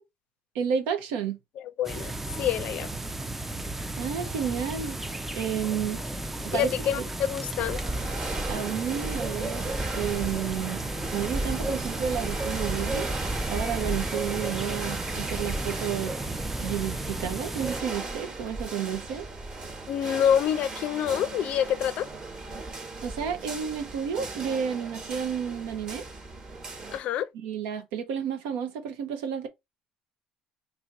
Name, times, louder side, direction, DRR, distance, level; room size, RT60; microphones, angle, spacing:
voice 1, 0.5-1.4 4.0-5.0 5.3-6.0 6.4-7.0 8.5-10.8 11.1-13.1 13.5-16.2 16.6-19.3 23.0-26.0 27.3-29.5, right 8 dB, 85° right, 0.7 m, -31 dB
voice 2, 1.8-2.1 2.4-2.9 6.5-7.8 19.9-22.1 26.9-27.3, left 9 dB, 60° left, 0.4 m, -26 dB
sound 1, 1.8-17.8, right 2 dB, 10° right, 0.4 m, -34 dB
sound 2, 7.6-27.0, right 2 dB, 30° right, 1.1 m, -36 dB
2.7 x 2.6 x 4.1 m
cardioid pair, 110°, 2 cm